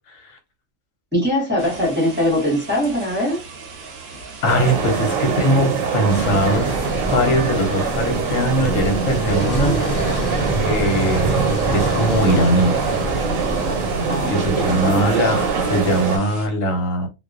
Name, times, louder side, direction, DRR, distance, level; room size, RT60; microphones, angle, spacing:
voice 1, 0.1-0.4 4.4-6.7 7.1-12.8 14.3-17.1, equal, 75° left, 1.1 m, -21 dB
voice 2, 1.1-3.4 14.1-15.0, equal, 10° right, 0.9 m, -21 dB
sound 1, 1.6-16.5, right 4 dB, 60° right, 0.8 m, -39 dB
sound 2, 4.5-16.2, right 5 dB, 90° right, 1.0 m, -23 dB
sound 3, 6.1-15.7, equal, 40° left, 0.9 m, -27 dB
2.3 x 2.2 x 2.4 m
omnidirectional pair, 1.3 m